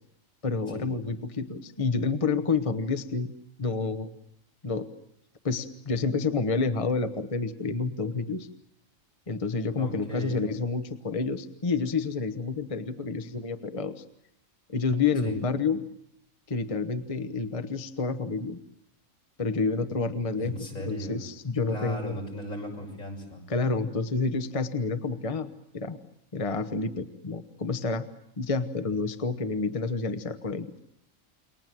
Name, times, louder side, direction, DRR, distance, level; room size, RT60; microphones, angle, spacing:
voice 1, 0.4-3.3 3.6-4.1 4.6-4.9 5.4-8.5 9.3-14.0 14.7-15.8 16.5-18.6 19.4-22.2 23.5-25.5 25.7-26.0 26.3-28.1 28.4-30.8, left 4 dB, 25° left, 10 dB, 1.1 m, -29 dB
voice 2, 9.8-10.4 15.2-15.3 20.3-21.2 21.7-23.4, equal, 75° left, 1 dB, 6.9 m, -37 dB
29.0 x 23.0 x 7.7 m, 0.74 s
omnidirectional pair, 1.4 m